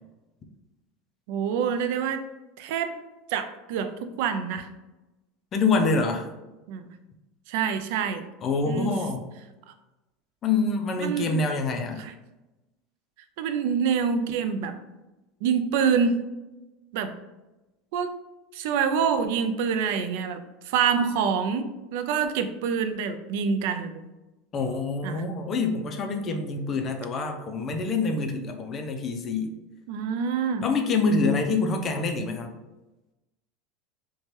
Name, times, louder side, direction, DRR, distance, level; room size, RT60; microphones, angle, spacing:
voice 1, 1.3-2.2 2.6-2.9 3.3-4.7 6.7-6.9 7.5-8.3 8.7-8.9 11.0-11.4 12.0-12.1 13.4-14.7 15.4-16.2 16.9-17.1 17.9-18.1 18.5-20.4 20.7-24.0 25.0-25.2 29.9-30.6, right 6 dB, 70° right, 9 dB, 0.3 m, -26 dB
voice 2, 5.5-6.3 8.4-9.2 10.4-12.1 24.5-29.5 30.6-32.6, left 3 dB, 35° left, 4 dB, 0.4 m, -26 dB
2.8 x 2.2 x 3.1 m, 1.0 s
supercardioid pair, 110°, 0 cm